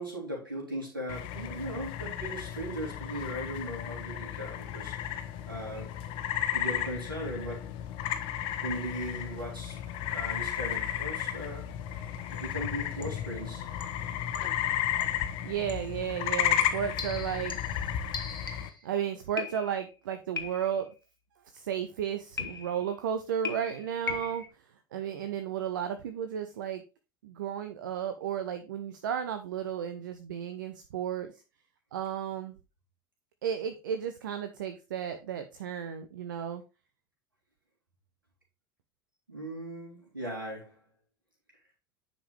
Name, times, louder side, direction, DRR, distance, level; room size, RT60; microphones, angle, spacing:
voice 1, 0.0-6.0 6.5-7.7 8.6-9.8 10.1-11.7 12.0-12.1 12.4-13.7 39.3-40.8, right 1 dB, 85° right, -3 dB, 3.4 m, -38 dB
sound 1, 1.1-18.7, left 11 dB, 50° left, 1.0 m, -33 dB
sound 2, 12.3-12.6 13.0-13.3 13.8-14.7 15.0-15.3 15.7-15.9 16.6-18.9 19.4-19.9 20.4-20.9 22.4-22.9 23.4-24.5, left 5 dB, 85° left, 1.1 m, -40 dB
voice 2, 15.4-17.8 18.8-20.9 21.5-24.4 24.9-26.8 27.2-31.4 31.9-32.6 33.4-36.6, right 9 dB, 65° right, 8 dB, 0.7 m, -33 dB
9.8 x 5.3 x 3.4 m, 0.29 s
figure-of-eight pair, 70°, 11 cm